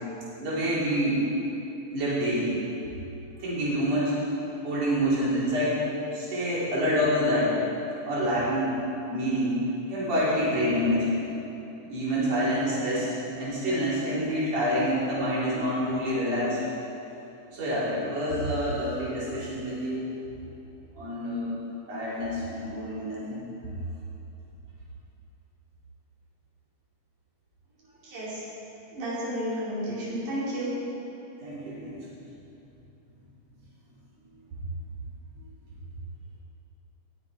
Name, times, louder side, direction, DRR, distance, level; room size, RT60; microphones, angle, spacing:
voice 1, 0.4-1.2 1.9-2.5 3.4-4.1 4.6-5.8 6.1-7.5 8.0-8.7 9.1-9.6 9.9-11.1 11.8-13.1 13.4-16.6 17.5-20.1 21.0-21.6 21.9-23.4 31.4-32.0, equal, 60° right, -9 dB, 4.7 m, -27 dB
voice 2, 28.0-28.4 28.9-30.7, right 1 dB, 90° right, -8 dB, 4.4 m, -32 dB
19.5 x 8.3 x 4.9 m, 2.9 s
omnidirectional pair, 3.4 m